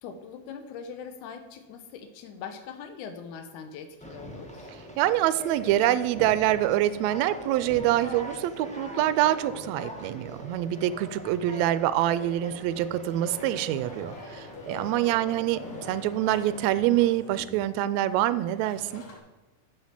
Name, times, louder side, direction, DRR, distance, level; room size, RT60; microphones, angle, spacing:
voice 1, 0.0-4.7, left 6 dB, 85° left, 7 dB, 2.3 m, -41 dB
Conversation, 4.0-17.0, equal, 10° left, 0.4 m, -42 dB
voice 2, 5.0-15.6 15.9-19.0, right 13 dB, 80° right, 14 dB, 1.7 m, -25 dB
sound 1, 13.2-19.2, left 3 dB, 60° left, 2.8 m, -45 dB
7.5 x 7.0 x 7.4 m, 1.0 s
omnidirectional pair, 3.4 m